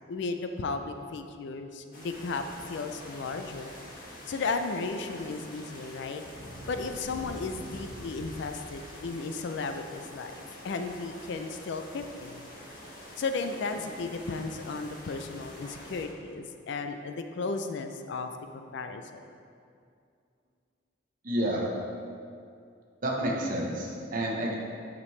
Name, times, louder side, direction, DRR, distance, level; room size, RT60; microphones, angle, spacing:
voice 1, 0.1-3.7 4.3-6.2 6.7-10.4 10.6-12.5 13.2-19.2, left 3 dB, 65° left, 7 dB, 0.4 m, -35 dB
sound 1, 1.9-16.1, equal, 50° left, 1.3 m, -45 dB
voice 2, 21.2-21.7 23.0-24.5, right 1 dB, 45° right, -2 dB, 0.9 m, -30 dB
8.2 x 5.1 x 3.2 m, 2.4 s
head